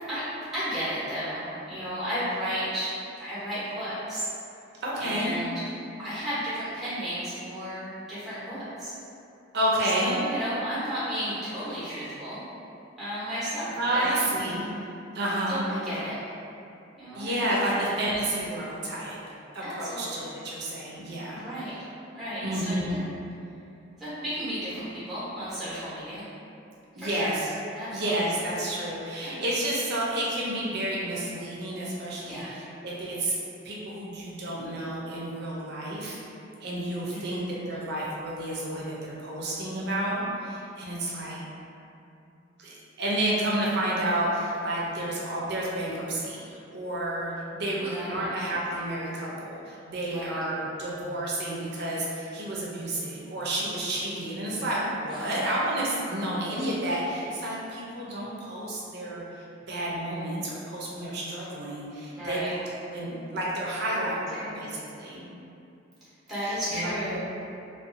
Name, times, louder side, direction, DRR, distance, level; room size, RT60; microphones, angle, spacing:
voice 1, 0.5-2.9 3.2-4.3 5.0-5.5 6.0-8.9 10.0-12.4 13.0-14.4 15.2-16.1 17.0-17.9 19.6-20.3 21.3-21.7 22.1-23.0 24.0-26.2 27.0-27.3 27.7-28.2 29.2-29.4 32.3-32.5 37.1-37.4 47.8-48.3 50.1-50.4 55.1-55.4 62.1-62.5 64.4-64.6 66.3-67.2, equal, ahead, -13 dB, 0.8 m, -33 dB
voice 2, 4.8-5.3 9.5-10.1 13.8-14.7 15.1-15.7 17.1-19.2 19.5-21.4 22.4-23.0 27.0-27.5 27.9-33.4 33.6-36.2 36.6-41.4 42.6-62.6 62.9-65.2 66.4-67.2, right 1 dB, 60° right, -6 dB, 0.5 m, -30 dB
2.6 x 2.2 x 2.5 m, 2.7 s
head